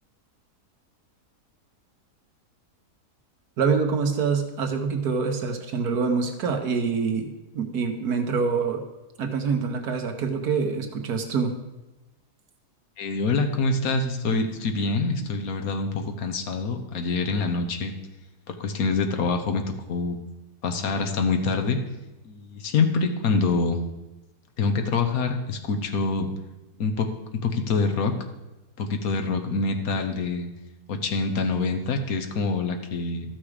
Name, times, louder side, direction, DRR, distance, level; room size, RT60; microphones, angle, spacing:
voice 1, 3.6-8.8 9.2-11.5, right 5 dB, 75° right, 5 dB, 1.5 m, -25 dB
voice 2, 13.0-17.9 18.5-19.6 19.9-20.2 20.6-21.8 22.2-23.8 24.6-26.3 26.8-27.1 27.4-28.1 28.8-30.5 30.9-33.4, left 4 dB, 65° left, 5 dB, 1.3 m, -25 dB
13.5 x 6.1 x 4.9 m, 1.0 s
omnidirectional pair, 1.7 m